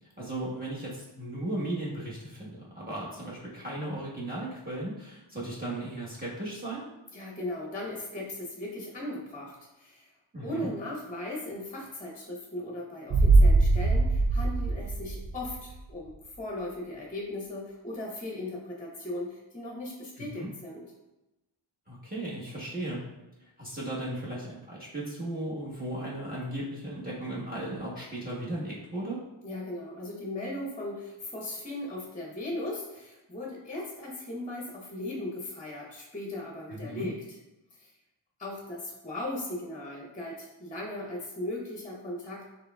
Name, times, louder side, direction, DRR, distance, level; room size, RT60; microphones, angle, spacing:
voice 1, 0.0-6.9 10.3-10.7 20.2-20.5 21.9-23.0 23.4-29.2 36.7-37.1, right 1 dB, 20° right, -6 dB, 1.2 m, -36 dB
voice 2, 7.1-10.1 10.4-20.8 29.4-37.4 37.7-37.9 38.4-42.4, left 1 dB, 15° left, -2 dB, 0.8 m, -38 dB
sound 1, 13.1-15.8 16.1-16.2, right 2 dB, 45° right, 0.5 m, -22 dB
4.8 x 3.3 x 2.3 m, 0.97 s
wide cardioid pair, 55°, 50 cm